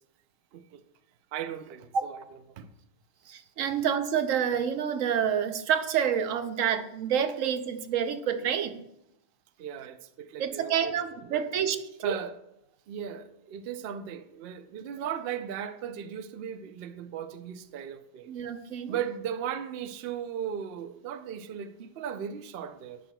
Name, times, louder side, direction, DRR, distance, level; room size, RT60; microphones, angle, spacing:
voice 1, 0.5-0.8 1.3-2.2 2.6-2.7 9.6-11.0 11.3-11.5 12.0-12.4 12.9-18.3 18.9-23.0, right 8 dB, 80° right, 0.5 m, -37 dB
voice 2, 3.3-8.8 10.4-11.8 12.0-12.2 15.0-15.1 18.3-19.0, right 8 dB, 65° right, 1.0 m, -28 dB
13.5 x 5.8 x 2.3 m
omnidirectional pair, 1.6 m